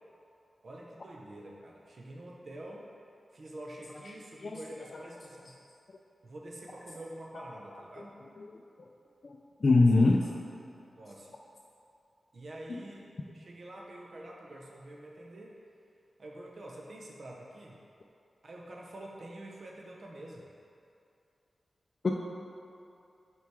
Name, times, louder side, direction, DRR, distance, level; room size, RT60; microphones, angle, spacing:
voice 1, 0.6-2.9 3.3-5.6 6.2-8.2 9.6-10.1 10.9-11.3 12.3-15.6 16.2-17.8 18.4-20.5, right 1 dB, 55° right, -2 dB, 0.7 m, -47 dB
voice 2, 7.7-8.1 8.4-8.5 8.8-8.9 9.2-10.2 22.0-22.1, left 3 dB, 45° left, -1 dB, 0.4 m, -25 dB
5.8 x 4.6 x 4.7 m, 2.6 s
wide cardioid pair, 125°, 0 cm